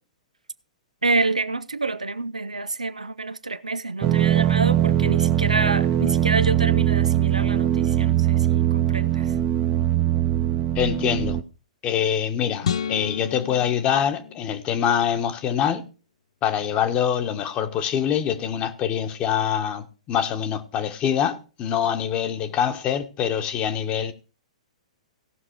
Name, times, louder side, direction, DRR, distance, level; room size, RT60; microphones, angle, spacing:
voice 1, 1.0-9.4, right 3 dB, 80° right, 0.5 m, -27 dB
sound 1, 4.0-11.4, right 12 dB, 30° right, 0.9 m, -21 dB
voice 2, 10.7-11.4 11.8-15.8 16.4-24.1, left 9 dB, 30° left, 1.3 m, -24 dB
sound 2, 12.6-15.0, left 8 dB, 60° left, 0.8 m, -31 dB
17.0 x 6.0 x 4.7 m
figure-of-eight pair, 110°, 4 cm